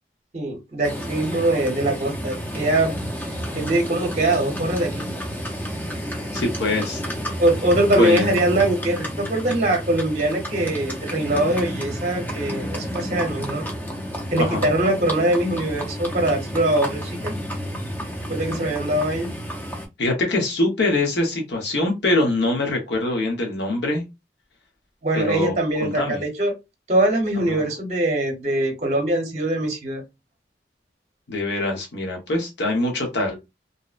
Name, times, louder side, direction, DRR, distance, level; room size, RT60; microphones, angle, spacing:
voice 1, 0.3-2.9 3.2-5.1 7.4-13.7 14.3-17.3 18.3-19.3 25.0-26.5 26.9-30.0, right 1 dB, 40° right, 3 dB, 0.7 m, -22 dB
Livestock farm animals working animals, 0.8-19.9, equal, 10° left, 0.4 m, -31 dB
voice 2, 6.3-7.0 8.0-8.3 14.4-14.7 20.0-24.0 25.1-26.2 27.5-27.6 31.3-33.4, left 2 dB, 80° left, 1 dB, 0.8 m, -23 dB
2.7 x 2.0 x 2.3 m, 0.23 s
head